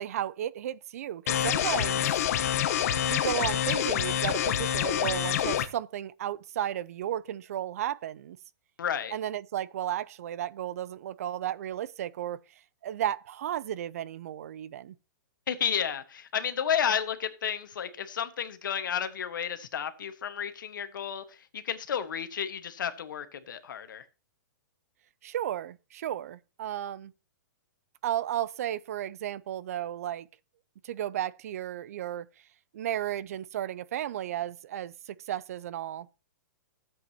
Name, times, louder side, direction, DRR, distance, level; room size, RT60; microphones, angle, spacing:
voice 1, 0.0-2.0 3.0-8.4 9.1-12.4 12.8-14.9 25.2-27.1 28.0-30.3 30.8-32.3 32.7-36.1, right 11 dB, 45° right, 0.4 m, -34 dB
sound 1, 1.3-5.7, left 10 dB, 50° left, 0.9 m, -27 dB
voice 2, 8.8-9.2 15.5-24.0, left 8 dB, 80° left, 1.4 m, -32 dB
14.0 x 7.7 x 2.9 m
hypercardioid pair, 170°, 11 cm